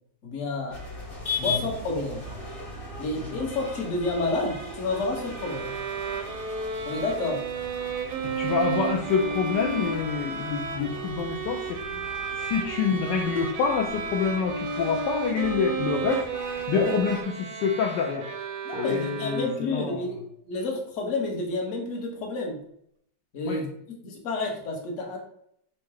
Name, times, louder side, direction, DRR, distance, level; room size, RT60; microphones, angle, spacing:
voice 1, 0.2-0.8 1.4-2.2 3.0-5.7 6.9-7.4 16.7-17.0 18.6-20.2 20.4-22.6 23.3-25.2, left 2 dB, 50° left, 0 dB, 1.2 m, -30 dB
sound 1, 0.7-17.2, left 2 dB, 25° left, 0.8 m, -39 dB
Bowed string instrument, 5.3-19.8, right 5 dB, 70° right, 1.1 m, -33 dB
voice 2, 8.4-11.8 12.4-16.2 16.7-18.3 18.7-20.0 23.5-23.6, left 6 dB, 75° left, 0 dB, 1.1 m, -27 dB
4.6 x 2.1 x 4.6 m, 0.69 s
omnidirectional pair, 2.0 m